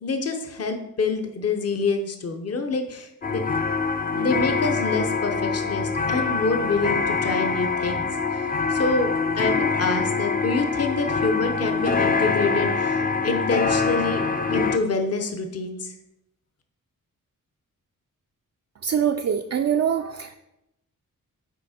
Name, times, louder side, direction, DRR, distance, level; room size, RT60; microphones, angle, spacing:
voice 1, 0.0-3.4 4.1-14.2 14.5-15.9, left 3 dB, 45° left, 6 dB, 0.9 m, -27 dB
sound 1, 3.2-14.8, left 4 dB, 25° left, 0.5 m, -24 dB
voice 2, 18.8-20.3, right 8 dB, 50° right, 5 dB, 0.4 m, -24 dB
8.4 x 5.0 x 4.2 m, 0.86 s
wide cardioid pair, 125°, 33 cm